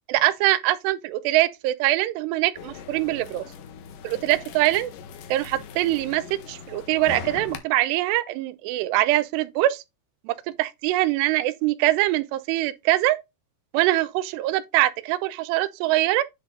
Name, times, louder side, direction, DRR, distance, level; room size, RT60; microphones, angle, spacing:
voice 1, 0.1-3.4 4.0-4.9 5.3-9.8 10.3-13.2 13.7-16.2, right 16 dB, 85° right, 2.7 m, -23 dB
sound 1, 2.5-7.6, left 7 dB, 70° left, 2.1 m, -40 dB
10.0 x 3.6 x 3.7 m
omnidirectional pair, 4.9 m